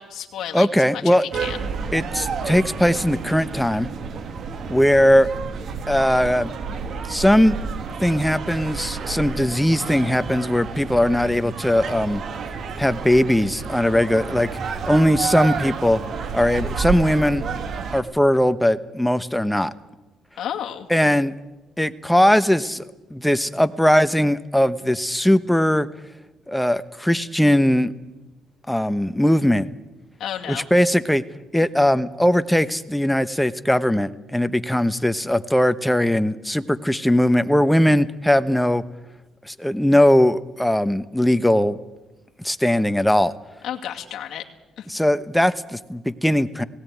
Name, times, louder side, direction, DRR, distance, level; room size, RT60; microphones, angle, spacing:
voice 1, 0.0-0.7 0.9-1.7 20.4-20.9 30.2-30.7 43.6-44.4 44.8-44.9, left 10 dB, 60° left, 0 dB, 2.3 m, -32 dB
voice 2, 0.5-1.3 1.9-3.9 4.7-5.3 5.9-6.5 7.1-7.6 8.0-12.2 12.8-16.0 16.3-17.4 17.9-19.7 20.9-21.3 21.8-22.8 23.1-25.9 26.5-27.9 28.7-29.7 30.5-31.2 31.5-38.8 39.5-41.8 42.4-43.3 44.9-46.6, equal, 5° left, 13 dB, 1.0 m, -19 dB
sound 1, 1.3-18.0, right 5 dB, 55° right, 2.2 m, -30 dB
18.0 x 18.0 x 9.4 m, 1.1 s
cardioid pair, 90°, 0 cm